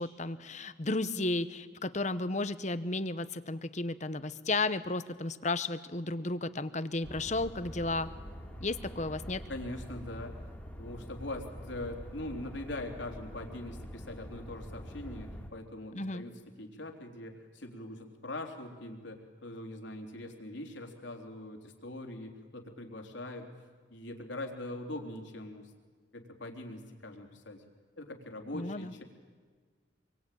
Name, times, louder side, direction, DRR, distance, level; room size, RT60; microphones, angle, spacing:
voice 1, 0.0-8.1 8.6-9.4 15.9-16.2 28.5-28.9, left 2 dB, 35° left, 13 dB, 1.0 m, -33 dB
sound 1, 7.0-15.5, equal, 5° left, 2.4 m, -45 dB
voice 2, 9.5-10.3 10.8-16.3 16.6-23.5 23.9-25.7 26.1-27.6 28.0-29.0, left 1 dB, 70° left, 3 dB, 3.6 m, -42 dB
26.5 x 23.0 x 9.3 m, 1.5 s
head